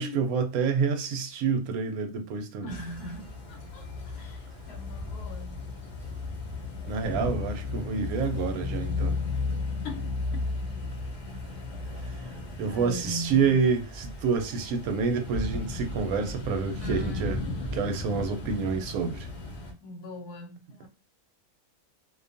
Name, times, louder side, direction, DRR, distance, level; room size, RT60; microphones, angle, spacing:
voice 1, 0.0-2.7 6.9-9.2 12.1-12.2 12.6-17.4 17.7-19.3, right 5 dB, 75° right, 1.0 m, -28 dB
voice 2, 2.6-5.6 9.8-10.1 12.7-13.7 16.8-17.4 19.8-20.9, left 1 dB, 85° left, 1.2 m, -41 dB
sound 1, 2.7-19.7, left 3 dB, 45° left, 0.6 m, -35 dB
2.5 x 2.2 x 2.5 m
omnidirectional pair, 1.6 m